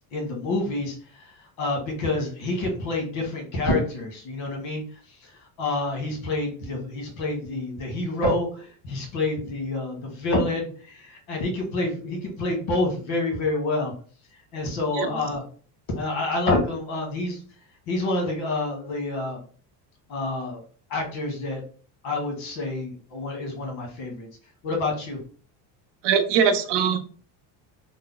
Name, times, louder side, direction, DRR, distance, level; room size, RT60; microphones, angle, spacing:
voice 1, 0.1-1.3 1.6-4.8 5.2-5.3 5.6-13.9 14.5-15.4 15.9-17.4 17.9-19.4 20.1-20.6 20.9-21.6 22.0-24.3 24.6-25.2, left 2 dB, 75° left, 1 dB, 1.6 m, -28 dB
voice 2, 26.0-27.0, right 7 dB, 60° right, 7 dB, 0.7 m, -21 dB
3.4 x 2.1 x 3.7 m, 0.43 s
cardioid pair, 130°, 48 cm